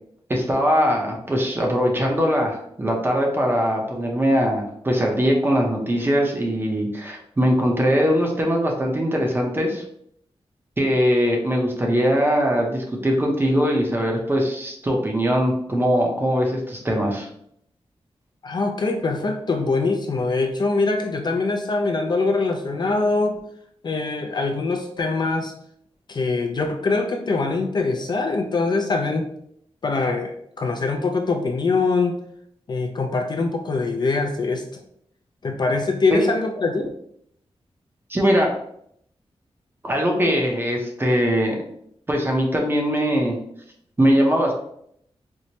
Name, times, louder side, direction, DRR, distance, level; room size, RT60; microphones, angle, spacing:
voice 1, 0.3-9.8 10.8-17.3 36.1-36.2 38.1-38.5 39.8-41.6 42.1-43.4 44.0-44.5, equal, 20° right, 0 dB, 0.6 m, -21 dB
voice 2, 18.4-23.4 23.8-25.5 26.1-29.3 29.8-32.2 32.7-34.8 35.4-36.9, left 3 dB, 45° left, 3 dB, 0.3 m, -23 dB
4.4 x 2.0 x 2.7 m, 0.71 s
wide cardioid pair, 170°, 11 cm